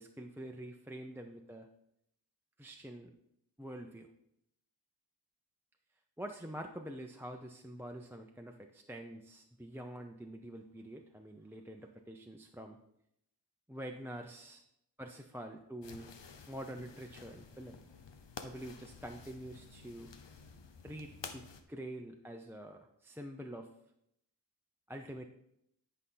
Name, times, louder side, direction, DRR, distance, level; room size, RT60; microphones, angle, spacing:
voice 1, 0.0-1.7 2.6-3.1 3.6-4.1 6.2-12.8 13.7-14.6 15.0-16.1 16.5-17.8 18.4-20.1 20.8-23.7 24.9-25.3, right 1 dB, 5° right, 2 dB, 0.6 m, -46 dB
sound 1, 15.8-21.6, left 5 dB, 90° left, 0.8 m, -51 dB
10.5 x 5.5 x 3.9 m, 0.77 s
wide cardioid pair, 50°, 42 cm